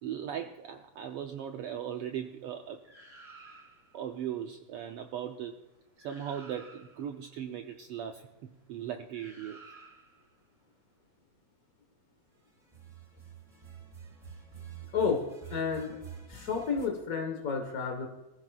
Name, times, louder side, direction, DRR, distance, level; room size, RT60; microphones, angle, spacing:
voice 1, 0.0-2.8 3.9-5.6 6.0-9.6, right 9 dB, 80° right, 5 dB, 1.3 m, -38 dB
sound 1, 2.8-4.0 5.6-5.7 6.0-7.1 9.1-10.3 12.6-16.9, right 6 dB, 25° right, 0.8 m, -49 dB
voice 2, 14.9-16.0 16.3-18.1, left 5 dB, 50° left, 2 dB, 1.0 m, -31 dB
24.0 x 14.5 x 2.4 m, 1.0 s
omnidirectional pair, 3.3 m